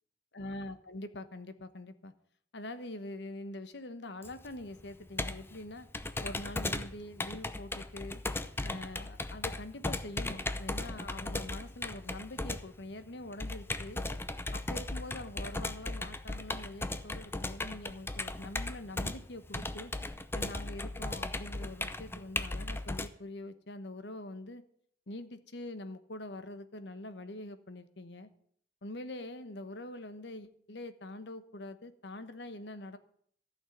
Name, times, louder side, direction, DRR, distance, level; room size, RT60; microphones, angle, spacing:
voice 1, 0.3-2.1 2.5-5.9 6.2-8.2 8.6-14.0 14.5-19.9 20.3-24.6 25.1-28.3 28.8-33.0, left 1 dB, 70° left, 11 dB, 1.1 m, -44 dB
Computer keyboard, 4.2-23.1, left 2 dB, 15° left, 0.6 m, -37 dB
14.5 x 6.4 x 9.2 m, 0.63 s
head